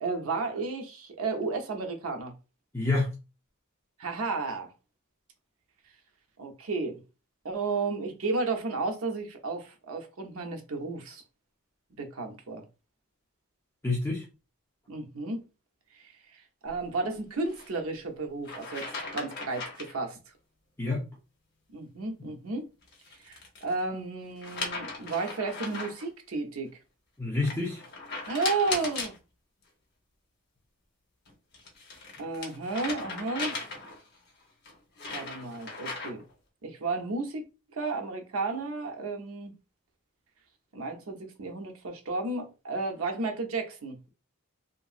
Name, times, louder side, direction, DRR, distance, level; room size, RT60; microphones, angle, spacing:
voice 1, 0.0-2.3 4.0-4.7 6.4-7.0 7.4-11.2 12.0-12.7 14.9-15.4 15.9-18.9 19.1-20.2 21.7-22.7 23.2-26.8 28.3-29.1 32.2-33.6 35.1-36.2 36.6-37.4 37.7-39.5 40.7-44.0, right 3 dB, 65° right, 0.6 m, -33 dB
voice 2, 2.7-3.1 13.8-14.2 20.8-21.1 27.2-27.8, left 3 dB, 10° left, 0.6 m, -28 dB
sound 1, 17.4-17.7 18.4-20.0 22.8-23.7 24.4-26.1 27.4-29.2 31.3-34.1 34.6-36.3, left 3 dB, 45° left, 0.9 m, -38 dB
2.9 x 2.6 x 2.4 m
head